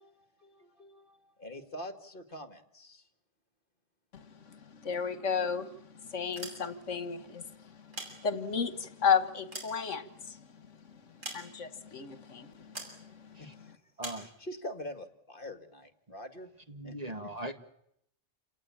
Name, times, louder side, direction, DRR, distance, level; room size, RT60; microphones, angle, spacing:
voice 1, 0.0-3.1 13.4-13.7 14.2-16.5 16.8-16.9, left 1 dB, 45° left, 2.2 m, -45 dB
voice 2, 4.1-7.6 7.8-10.4 11.3-13.4, left 6 dB, 70° left, 1.6 m, -33 dB
sound 1, 6.2-7.0 7.7-8.7 9.2-10.4 11.2-11.9 12.7-13.0 14.0-14.3, right 1 dB, 85° right, 6.9 m, -44 dB
voice 3, 16.7-17.5, right 1 dB, 30° right, 1.7 m, -40 dB
28.5 x 18.5 x 8.7 m
omnidirectional pair, 1.3 m